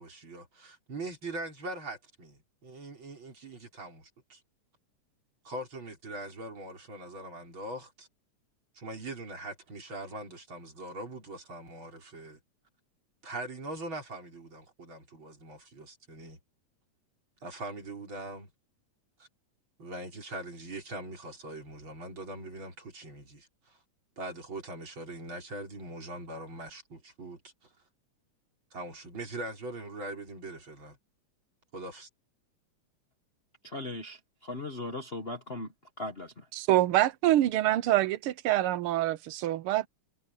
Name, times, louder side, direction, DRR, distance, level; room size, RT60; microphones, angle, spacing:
voice 1, 0.0-4.4 5.4-8.1 8.7-12.4 13.2-16.4 17.4-18.5 19.2-19.3 19.8-23.8 24.2-27.7 28.7-31.0 31.7-32.1, right 2 dB, 40° right, 5.6 m, -42 dB
voice 2, 33.6-35.7 36.0-36.3, left 2 dB, 85° left, 0.5 m, -38 dB
voice 3, 36.5-39.9, right 14 dB, 80° right, 1.2 m, -26 dB
omnidirectional pair, 3.4 m